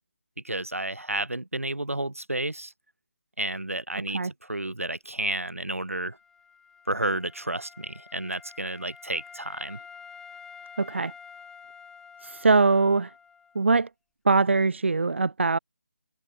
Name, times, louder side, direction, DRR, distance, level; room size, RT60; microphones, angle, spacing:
voice 1, 0.4-2.7 3.4-6.2 6.9-9.8, right 1 dB, 80° right, 4.5 m, -31 dB
Wind instrument woodwind instrument, 5.9-13.7, left 6 dB, 5° left, 3.6 m, -49 dB
voice 2, 10.8-11.1 12.2-13.1 13.5-13.9 14.2-15.6, right 3 dB, 60° right, 1.2 m, -22 dB
figure-of-eight pair, 150°, 7 cm